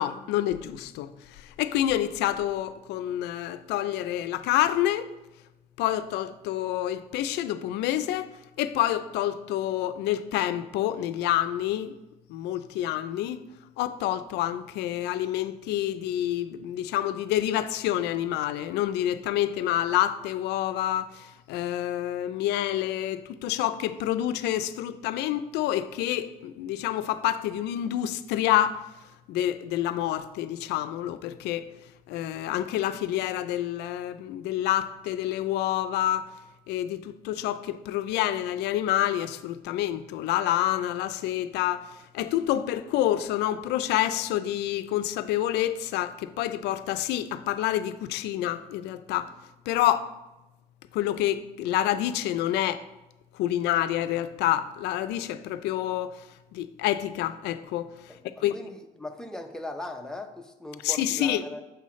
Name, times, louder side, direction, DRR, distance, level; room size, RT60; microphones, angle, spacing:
voice 1, 0.0-5.1 5.8-8.3 8.6-12.0 12.3-13.5 13.8-28.8 29.3-31.7 32.1-36.3 36.7-49.3 49.7-50.1 50.9-52.8 53.3-56.2 56.5-58.1 58.4-58.5 60.8-61.4, left 12 dB, 85° left, 0.4 m, -28 dB
voice 2, 58.1-61.6, left 1 dB, 5° left, 0.6 m, -39 dB
6.8 x 5.5 x 3.1 m
cardioid pair, 110°, 17 cm